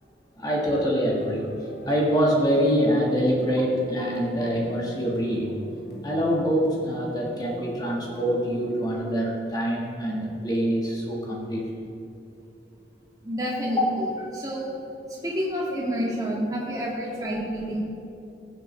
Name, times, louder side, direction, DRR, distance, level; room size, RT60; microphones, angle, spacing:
voice 1, 0.4-1.5 1.8-5.5 6.0-11.7, equal, 20° left, -3 dB, 1.6 m, -25 dB
sound 1, 1.2-9.0, right 1 dB, 60° left, 2.0 m, -42 dB
voice 2, 13.2-14.7 15.2-17.8, equal, 20° right, -5 dB, 2.2 m, -29 dB
15.5 x 7.9 x 3.3 m, 2.8 s
head